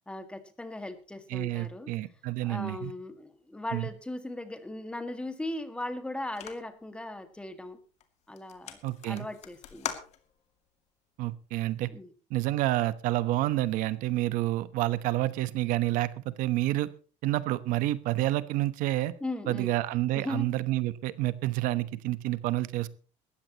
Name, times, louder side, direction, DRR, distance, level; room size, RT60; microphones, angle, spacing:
voice 1, 0.1-1.9 2.4-7.8 8.3-8.8 9.0-9.9 11.9-12.1 19.2-19.7 20.1-20.5, left 1 dB, 10° left, 9 dB, 1.9 m, -38 dB
voice 2, 1.3-2.9 3.7-3.9 8.8-9.3 11.2-11.9 12.3-16.9 17.2-19.1 19.5-22.9, right 16 dB, 85° right, 15 dB, 1.1 m, -29 dB
sound 1, 6.3-6.8 7.4-7.7 8.0-8.1 8.3-10.6, left 10 dB, 55° left, 2.4 m, -41 dB
19.5 x 14.5 x 3.0 m, 0.38 s
cardioid pair, 155°, 13 cm